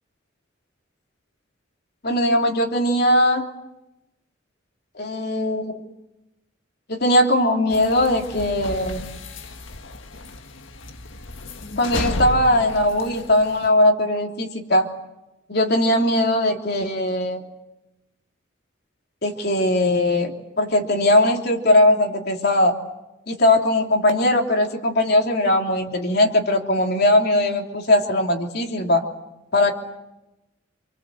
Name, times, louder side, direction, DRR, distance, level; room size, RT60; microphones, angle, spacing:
voice 1, 2.0-3.4 5.0-5.7 6.9-9.0 11.8-14.9 15.5-17.4 19.2-22.8 23.3-29.0 29.5-29.7, left 1 dB, 55° left, 2 dB, 3.3 m, -19 dB
sound 1, 7.7-13.7, left 2 dB, 85° left, 1.7 m, -33 dB
28.0 x 24.5 x 7.9 m, 0.94 s
head